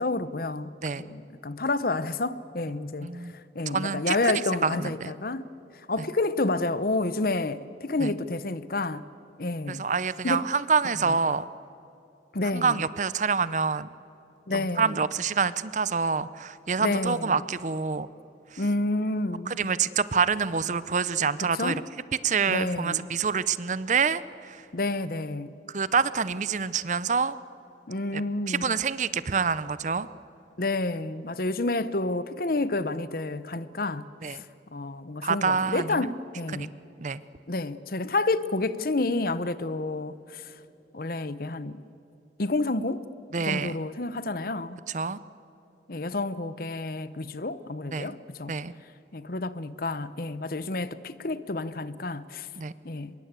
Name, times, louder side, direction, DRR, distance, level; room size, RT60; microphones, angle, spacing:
voice 1, 0.0-3.3 3.5-5.5 5.9-9.1 9.4-9.8 10.2-10.5 11.1-11.2 12.3-12.8 14.5-15.0 16.8-17.4 18.6-19.5 21.5-21.8 22.5-23.1 24.7-25.5 27.9-28.7 30.6-34.4 34.7-36.7 37.5-40.5 40.9-41.8 42.4-43.1 43.4-44.8 45.9-48.5 49.1-52.5 52.8-53.1, left 2 dB, 50° left, 0.9 m, -29 dB
voice 2, 3.0-3.3 3.7-4.3 4.6-5.1 8.0-8.1 9.7-11.4 12.5-13.9 14.5-18.1 18.5-18.6 19.5-21.8 22.2-24.6 25.7-27.4 28.1-28.2 28.5-30.1 34.2-34.4 35.2-36.2 36.6-36.7 37.0-37.2 43.3-43.8 44.9-45.2 47.9-48.1 48.5-48.7 52.6-52.7, right 5 dB, 40° right, 0.6 m, -27 dB
24.5 x 22.5 x 8.2 m
head